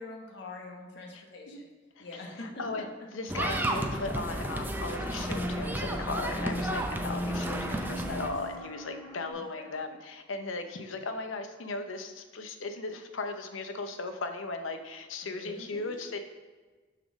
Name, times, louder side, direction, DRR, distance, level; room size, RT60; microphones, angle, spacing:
voice 1, 0.0-1.7 2.0-2.8 9.6-9.7 15.2-16.2, left 2 dB, 60° left, -1 dB, 1.2 m, -44 dB
voice 2, 2.4-2.8 3.1-16.2, left 3 dB, 85° left, 7 dB, 0.7 m, -37 dB
sound 1, 3.3-8.3, right 1 dB, 10° right, 0.5 m, -32 dB
sound 2, 3.4-9.3, left 1 dB, 15° left, 0.9 m, -48 dB
6.4 x 4.3 x 6.2 m, 1.3 s
head